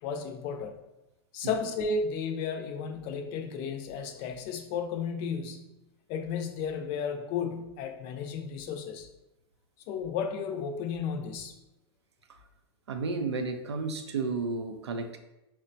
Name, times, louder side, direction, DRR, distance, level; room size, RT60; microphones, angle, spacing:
voice 1, 0.0-0.7 1.3-5.7 6.1-9.1 9.9-11.5, left 5 dB, 45° left, 5 dB, 0.5 m, -33 dB
voice 2, 12.9-15.2, right 4 dB, 90° right, 6 dB, 0.5 m, -32 dB
4.4 x 2.1 x 2.6 m, 0.97 s
hypercardioid pair, 115°, 14 cm